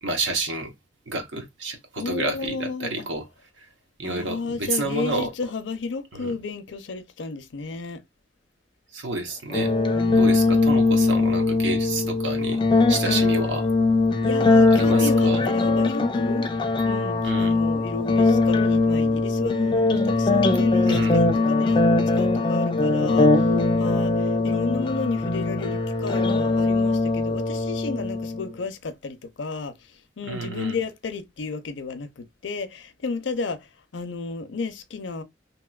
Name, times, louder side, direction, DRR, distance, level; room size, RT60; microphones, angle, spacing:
voice 1, 0.0-0.7 1.1-3.3 4.0-5.3 6.1-6.3 8.9-9.7 10.2-12.6 12.9-13.7 14.7-15.4 17.2-17.5 20.8-21.2 30.3-30.7, right 2 dB, 90° right, 0.9 m, -29 dB
voice 2, 2.0-3.1 4.0-8.0 9.9-11.4 14.2-16.5 16.8-23.5 23.8-35.2, left 4 dB, 75° left, 0.5 m, -32 dB
sound 1, 9.5-28.5, left 3 dB, 25° left, 0.4 m, -21 dB
2.9 x 2.9 x 2.3 m
head